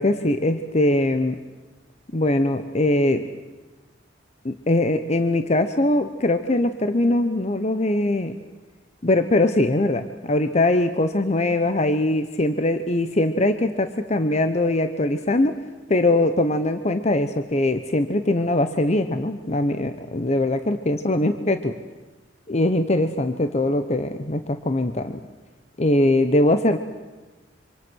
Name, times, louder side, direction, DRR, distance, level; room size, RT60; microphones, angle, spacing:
voice 1, 0.0-1.4 2.1-3.2 4.4-8.4 9.0-15.5 15.9-21.7 22.5-25.2 25.8-26.8, left 1 dB, 35° left, 9 dB, 0.9 m, -21 dB
26.5 x 26.0 x 6.3 m, 1.2 s
head